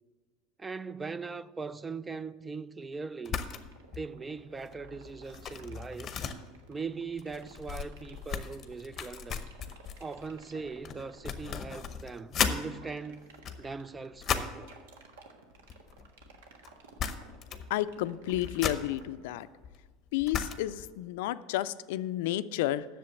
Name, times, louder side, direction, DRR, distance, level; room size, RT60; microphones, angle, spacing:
voice 1, 0.6-3.4 4.0-6.1 6.7-9.5 10.0-13.3 13.6-14.7, right 4 dB, 15° right, 0.3 m, -40 dB
sound 1, 3.2-3.6 3.9-4.2 4.5-12.6 13.2-14.7 15.6-16.4 16.6-16.7 17.0-17.7 18.0-20.9, left 7 dB, 35° left, 0.7 m, -36 dB
sound 2, 3.7-19.6, right 5 dB, 90° right, 1.3 m, -54 dB
voice 2, 17.7-19.5 20.1-22.9, left 14 dB, 80° left, 0.4 m, -31 dB
7.7 x 6.7 x 8.3 m
supercardioid pair, 130°, 0 cm